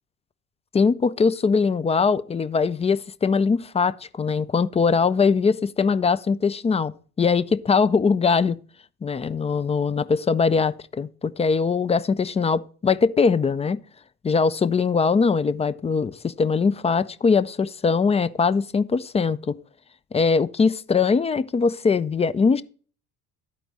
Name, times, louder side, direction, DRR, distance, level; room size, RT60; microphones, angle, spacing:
voice 1, 0.7-8.6 9.0-13.8 14.2-19.6 20.1-22.6, left 5 dB, 15° left, 0.3 m, -21 dB
12.5 x 4.6 x 3.9 m
hypercardioid pair, 65°, 46 cm